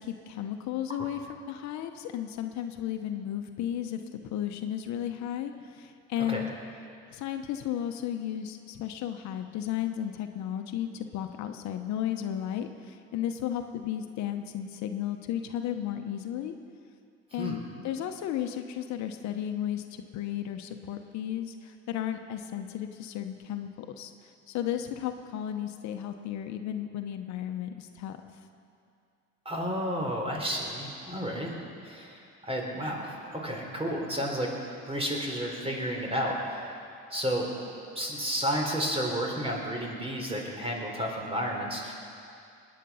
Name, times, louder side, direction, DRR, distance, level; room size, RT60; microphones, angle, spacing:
voice 1, 0.0-6.5 7.1-16.5 17.3-24.1 24.5-28.2, left 10 dB, 70° left, 7 dB, 1.0 m, -34 dB
voice 2, 29.5-31.6 31.8-34.5 34.9-36.8 37.1-37.4 38.0-41.9, equal, 20° right, 0 dB, 3.8 m, -31 dB
20.5 x 9.8 x 5.6 m, 2.5 s
supercardioid pair, 80°, 29 cm